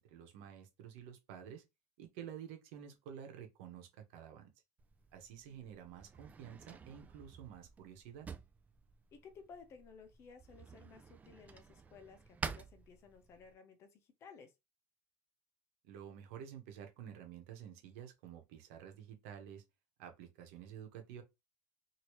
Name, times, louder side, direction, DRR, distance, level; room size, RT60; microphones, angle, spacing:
voice 1, 0.0-1.6 2.0-4.5 5.1-8.3 15.8-19.6 20.0-21.2, right 9 dB, 85° right, 1.0 m, -50 dB
Drawer open or close, 4.8-13.5, right 6 dB, 20° right, 0.4 m, -50 dB
voice 2, 9.1-14.5, left 5 dB, 40° left, 0.9 m, -57 dB
2.9 x 2.8 x 3.1 m
cardioid pair, 140°, 7 cm